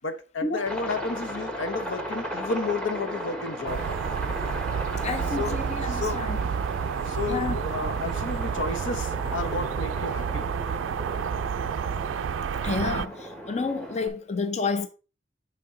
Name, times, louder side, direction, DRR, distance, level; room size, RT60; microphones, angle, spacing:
voice 1, 0.0-3.8 5.4-5.6 5.9-6.3 6.9-10.5, left 3 dB, 85° left, 1.0 m, -32 dB
Aircraft, 0.7-14.1, equal, 5° left, 1.2 m, -37 dB
sound 1, 3.7-13.1, right 7 dB, 90° right, 0.3 m, -30 dB
voice 2, 5.0-6.4 7.3-7.6 12.6-14.9, left 4 dB, 40° left, 0.6 m, -30 dB
9.5 x 3.8 x 3.7 m
head